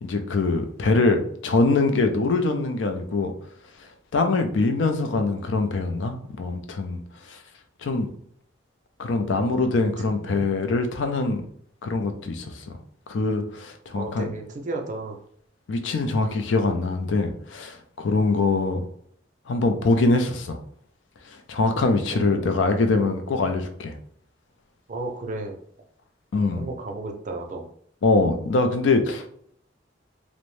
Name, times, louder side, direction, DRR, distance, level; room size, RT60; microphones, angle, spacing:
voice 1, 0.0-3.3 4.1-7.0 7.3-7.4 7.8-8.1 9.0-11.5 11.8-12.8 13.1-14.3 15.7-18.8 19.5-20.6 21.5-23.9 26.3-26.7 28.0-29.3, left 3 dB, 90° left, 6 dB, 0.4 m, -23 dB
voice 2, 10.0-10.6 13.9-15.2 22.1-22.6 24.9-25.6 26.3-27.6, right 2 dB, 45° right, 3 dB, 0.5 m, -34 dB
2.6 x 2.1 x 3.1 m, 0.63 s
head